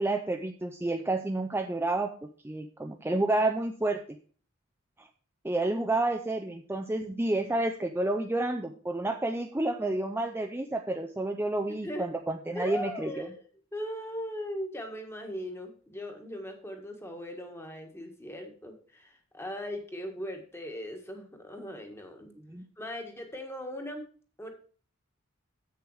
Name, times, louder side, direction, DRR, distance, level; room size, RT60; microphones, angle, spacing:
voice 1, 0.0-2.1 2.4-4.0 5.0-5.1 5.4-13.3 22.5-22.6, right 2 dB, 10° right, 4 dB, 0.5 m, -30 dB
voice 2, 11.7-12.1 12.5-13.4 13.7-22.3 22.8-24.0 24.4-24.5, equal, 10° left, 3 dB, 1.5 m, -39 dB
8.0 x 6.8 x 4.8 m, 0.42 s
head